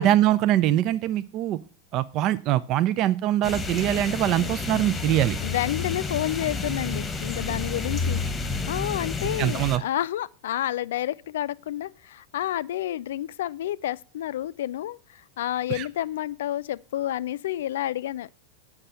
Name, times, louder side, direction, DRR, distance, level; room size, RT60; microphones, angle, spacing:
voice 1, 0.0-1.6 1.9-5.4 9.4-9.8 15.7-15.9, right 13 dB, 40° right, 0.4 m, -23 dB
sound 1, 3.4-9.8, left 4 dB, 15° left, 1.1 m, -30 dB
voice 2, 5.4-8.2 8.7-18.3, left 12 dB, 60° left, 0.4 m, -30 dB
8.7 x 5.9 x 7.5 m
figure-of-eight pair, 90°, 0 cm